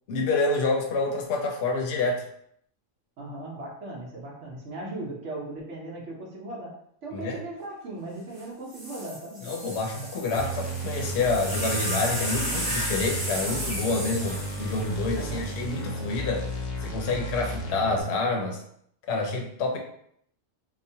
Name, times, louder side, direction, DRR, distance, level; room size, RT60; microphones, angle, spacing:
voice 1, 0.1-2.2 7.1-7.4 9.4-16.5 16.8-18.6 19.1-19.8, left 3 dB, 65° left, 1 dB, 0.8 m, -28 dB
voice 2, 3.2-6.7 7.0-9.4 15.1-15.5, right 2 dB, 70° right, -3 dB, 1.1 m, -38 dB
sound 1, 8.4-8.5 8.7-16.1 17.0-17.5, equal, 30° right, 0.7 m, -34 dB
sound 2, 10.3-18.0, right 1 dB, 85° left, 1.0 m, -34 dB
2.9 x 2.1 x 2.7 m, 0.68 s
omnidirectional pair, 1.3 m